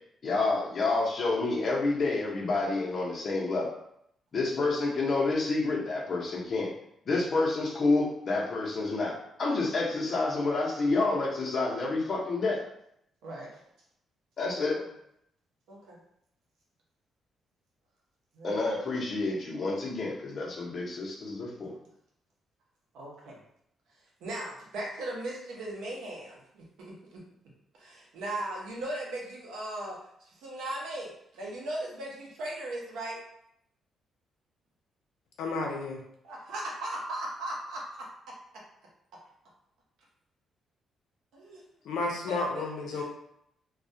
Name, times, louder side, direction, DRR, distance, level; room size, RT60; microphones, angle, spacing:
voice 1, 0.2-3.7 4.3-6.7 7.1-12.6 14.4-14.8 18.4-21.8, left 3 dB, 45° left, -3 dB, 0.7 m, -29 dB
voice 2, 13.2-13.6 14.7-14.8 15.7-16.0 18.3-18.6 22.9-23.4 24.2-27.2 27.8-30.0 30.2-33.2 36.2-38.1 41.3-41.6 42.3-42.7 42.9-43.0, right 1 dB, 90° right, -3 dB, 0.7 m, -38 dB
voice 3, 35.4-36.0 41.8-43.0, left 3 dB, 85° left, 1 dB, 0.5 m, -32 dB
2.3 x 2.1 x 2.6 m, 0.73 s
cardioid pair, 115°, 0 cm